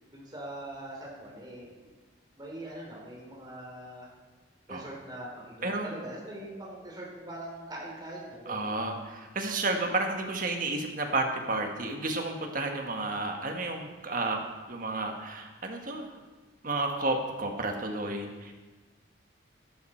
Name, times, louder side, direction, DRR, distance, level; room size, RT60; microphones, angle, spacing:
voice 1, 0.1-1.9 2.4-4.1 4.7-8.8, right 1 dB, 20° right, -3 dB, 3.5 m, -42 dB
voice 2, 5.6-5.9 8.5-16.1 16.6-18.5, right 2 dB, 45° right, 3 dB, 1.5 m, -31 dB
13.0 x 12.0 x 4.5 m, 1.3 s
head